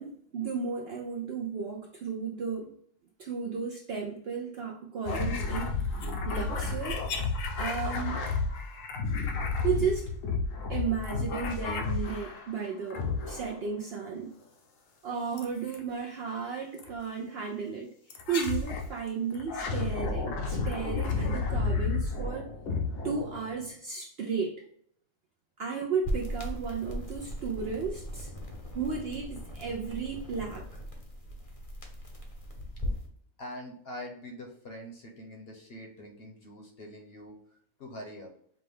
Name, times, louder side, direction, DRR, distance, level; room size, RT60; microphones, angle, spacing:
voice 1, 0.0-2.7 3.2-6.0 6.3-7.0 7.6-8.2 9.6-10.1 10.7-14.3 15.0-17.9 18.3-22.5 23.0-24.6 25.6-28.3 28.7-30.7, right 5 dB, 65° right, 1 dB, 0.6 m, -34 dB
sound 1, 5.1-12.5 12.9-13.7 15.4-15.8 16.8-16.9 18.1-18.9 19.3-23.7, left 4 dB, 70° left, 1.1 m, -32 dB
sound 2, 26.0-33.1, equal, 35° left, 0.6 m, -38 dB
voice 2, 33.4-37.4 37.8-38.3, left 1 dB, 50° left, 2 dB, 0.9 m, -44 dB
5.0 x 2.2 x 3.4 m, 0.64 s
omnidirectional pair, 1.4 m